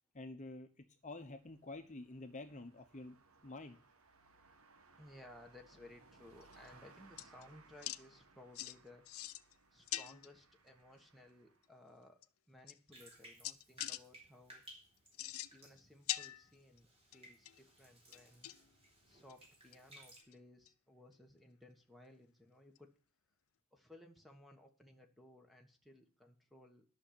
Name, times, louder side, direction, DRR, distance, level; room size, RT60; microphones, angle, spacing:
voice 1, 0.1-0.7 1.0-3.2 3.4-3.8, left 2 dB, 35° left, 7 dB, 1.0 m, -48 dB
sound 1, 1.0-11.7, right 3 dB, 75° right, 1.3 m, -65 dB
voice 2, 5.0-9.0 9.7-12.2 12.5-14.6 15.5-18.5 19.1-22.9 23.7-26.8, left 1 dB, ahead, 4 dB, 1.4 m, -60 dB
sound 2, 6.4-6.7 7.2-7.4 7.8-8.0 8.5-8.7 9.1-9.5 9.9-10.3 11.6-11.7 12.2-12.3 12.7-13.2 13.4-14.0 15.1-15.8 16.1-16.8 17.1-17.6 18.1-18.7 19.3-19.4 19.7-19.8 20.2-20.3 20.7-20.8 22.8-22.9, left 14 dB, 75° left, 0.5 m, -43 dB
Bathtub (filling or washing), 12.9-20.2, right 1 dB, 30° right, 3.6 m, -61 dB
11.0 x 6.5 x 8.7 m, 0.39 s
head